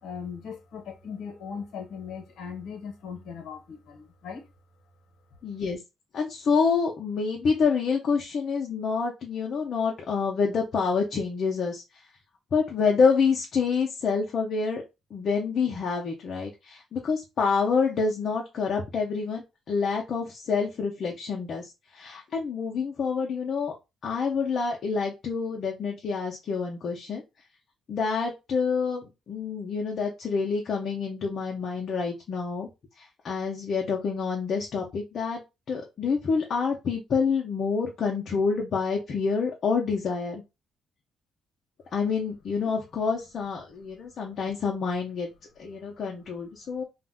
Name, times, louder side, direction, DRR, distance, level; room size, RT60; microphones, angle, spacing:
voice 1, 0.0-4.5, left 6 dB, 80° left, 0.9 m, -39 dB
voice 2, 5.4-5.8 6.1-11.8 12.5-14.8 15.1-23.7 24.0-27.2 27.9-32.7 33.0-35.4 35.7-40.4 41.9-45.3 45.6-46.8, left 5 dB, 55° left, 0.6 m, -27 dB
2.4 x 2.1 x 3.5 m
cardioid pair, 90°, 0 cm